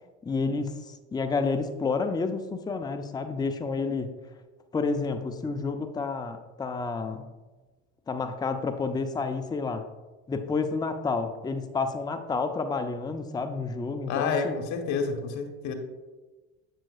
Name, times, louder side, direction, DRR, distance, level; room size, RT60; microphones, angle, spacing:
voice 1, 0.2-4.1 4.7-7.3 8.1-9.9 10.3-14.6, left 4 dB, 10° left, 7 dB, 0.5 m, -30 dB
voice 2, 14.1-15.7, left 5 dB, 55° left, 5 dB, 1.2 m, -29 dB
7.5 x 7.2 x 2.4 m, 1.2 s
hypercardioid pair, 75°, 35 cm